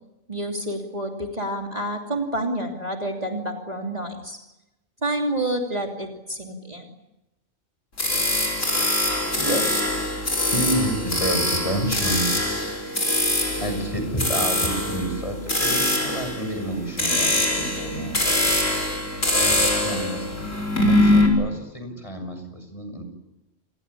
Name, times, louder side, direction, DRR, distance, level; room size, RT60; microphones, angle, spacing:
voice 1, 0.3-4.4 5.0-6.9, right 1 dB, 30° right, 2 dB, 3.0 m, -28 dB
sound 1, 8.0-21.3, left 1 dB, 75° left, 5.6 m, -23 dB
voice 2, 9.4-9.9 10.5-12.3 13.6-18.5 19.4-20.3 20.8-23.0, right 1 dB, 25° left, 6 dB, 6.6 m, -29 dB
29.0 x 21.0 x 8.4 m, 0.95 s
omnidirectional pair, 1.3 m